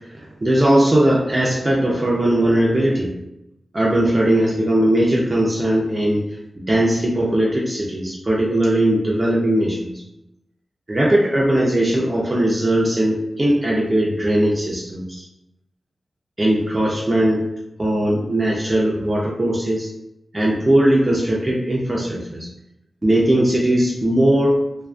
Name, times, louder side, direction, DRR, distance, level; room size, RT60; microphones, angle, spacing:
voice 1, 0.4-3.1 3.7-6.2 6.6-9.9 10.9-15.2 16.4-17.4 17.8-19.9 20.3-22.5 23.0-24.6, right 1 dB, 25° right, -4 dB, 0.4 m, -19 dB
2.4 x 2.4 x 2.2 m, 0.86 s
wide cardioid pair, 140°, 0 cm